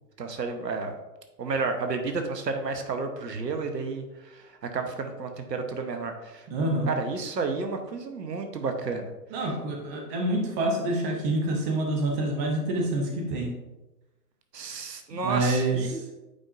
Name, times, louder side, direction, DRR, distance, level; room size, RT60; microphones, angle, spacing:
voice 1, 0.2-1.0 1.4-6.5 6.9-9.1 14.5-16.0, right 4 dB, 80° right, 6 dB, 1.1 m, -31 dB
voice 2, 6.5-6.9 9.3-13.6 15.1-16.0, right 1 dB, 10° right, 1 dB, 0.4 m, -27 dB
8.6 x 5.4 x 2.5 m, 1.0 s
figure-of-eight pair, 115°, 49 cm